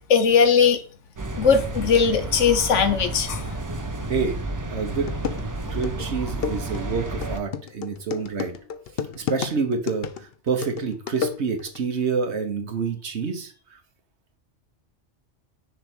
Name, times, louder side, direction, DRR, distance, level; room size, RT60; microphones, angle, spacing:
voice 1, 0.1-0.8 1.4-3.5, left 6 dB, 80° left, 9 dB, 1.2 m, -19 dB
sound 1, 1.2-7.4, right 2 dB, 30° right, 0.3 m, -31 dB
sound 2, 4.7-4.8 5.1-11.8, left 7 dB, 60° left, 0.8 m, -32 dB
voice 2, 4.7-8.5 9.1-13.8, right 5 dB, 65° right, 6 dB, 1.4 m, -28 dB
6.6 x 3.4 x 6.1 m, 0.40 s
omnidirectional pair, 1.2 m